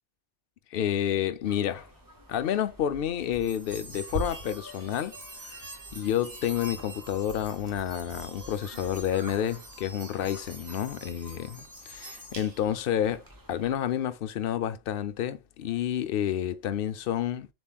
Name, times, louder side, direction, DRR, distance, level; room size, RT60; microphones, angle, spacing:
voice 1, 0.7-1.9 2.3-5.6 5.9-13.2 13.5-17.5, left 10 dB, 65° left, 0.7 m, -30 dB
sound 1, 1.4-13.7, right 1 dB, 20° right, 0.7 m, -51 dB
sound 2, 3.3-12.9, right 1 dB, 55° right, 1.2 m, -43 dB
7.0 x 3.0 x 2.2 m
omnidirectional pair, 1.1 m